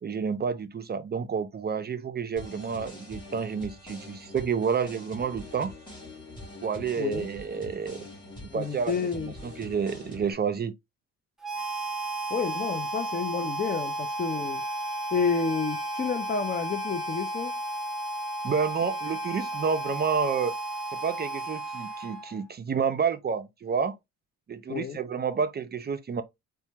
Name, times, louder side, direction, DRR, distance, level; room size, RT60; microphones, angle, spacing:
voice 1, 0.0-5.7 6.6-8.1 8.5-10.7 18.4-20.5 20.9-24.0 24.5-26.2, right 6 dB, 35° right, 0.5 m, -29 dB
sound 1, 2.4-10.3, left 1 dB, 15° left, 2.3 m, -44 dB
voice 2, 7.0-7.3 8.5-9.3 12.3-14.6 15.1-17.6 24.7-25.0, left 5 dB, 30° left, 0.5 m, -30 dB
Harmonica, 11.4-22.4, right 1 dB, ahead, 1.0 m, -33 dB
Bowed string instrument, 14.0-19.9, left 2 dB, 90° left, 1.1 m, -48 dB
4.3 x 2.2 x 2.8 m
cardioid pair, 90°, 30 cm